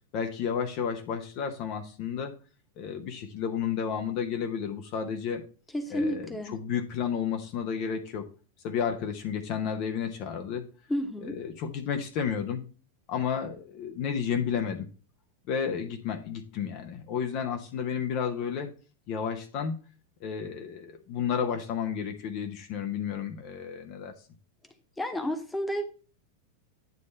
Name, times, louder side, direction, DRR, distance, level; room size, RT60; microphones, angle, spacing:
voice 1, 0.1-2.3 2.8-5.4 5.9-8.2 8.6-10.6 11.2-12.6 13.1-14.9 15.5-18.7 19.1-19.8 20.2-24.1, left 7 dB, 40° left, 5 dB, 0.9 m, -32 dB
voice 2, 5.7-6.5 10.9-11.3 25.0-25.8, equal, 5° left, 5 dB, 1.2 m, -31 dB
9.3 x 3.2 x 5.6 m, 0.36 s
figure-of-eight pair, 90°, 0 cm